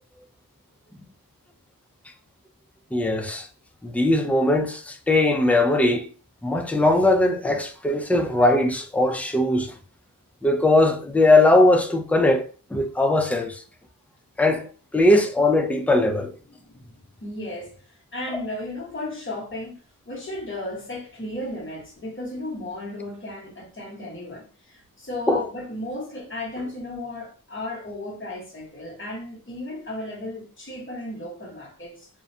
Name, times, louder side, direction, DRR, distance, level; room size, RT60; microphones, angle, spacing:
voice 1, 2.9-3.5 3.8-6.1 6.4-9.7 10.4-13.6 14.4-16.3 25.3-25.4, left 2 dB, 5° left, 0.4 m, -20 dB
voice 2, 17.2-17.8 18.1-32.1, left 2 dB, 35° left, 1.0 m, -34 dB
2.4 x 2.1 x 2.6 m
wide cardioid pair, 55°, 37 cm